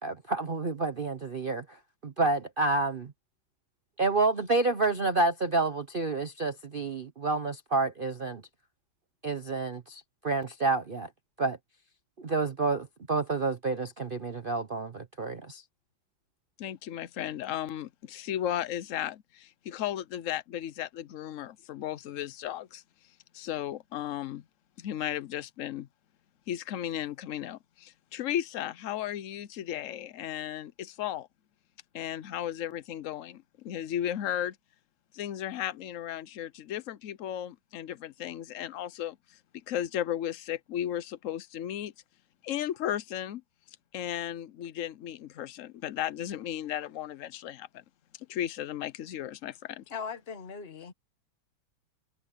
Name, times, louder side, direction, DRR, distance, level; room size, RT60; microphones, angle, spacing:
voice 1, 0.0-3.1 4.0-8.4 9.2-11.1 11.4-11.6 12.2-15.6, right 3 dB, 55° right, 0.6 m, -29 dB
voice 2, 16.6-22.8 23.3-24.4 24.8-25.9 26.5-31.3 31.9-34.6 35.1-39.4 39.7-41.9 42.4-43.4 43.9-47.8 48.3-49.8, left 11 dB, 75° left, 0.7 m, -35 dB
voice 3, 49.9-50.9, left 6 dB, 35° left, 1.3 m, -39 dB
omnidirectional pair, 2.2 m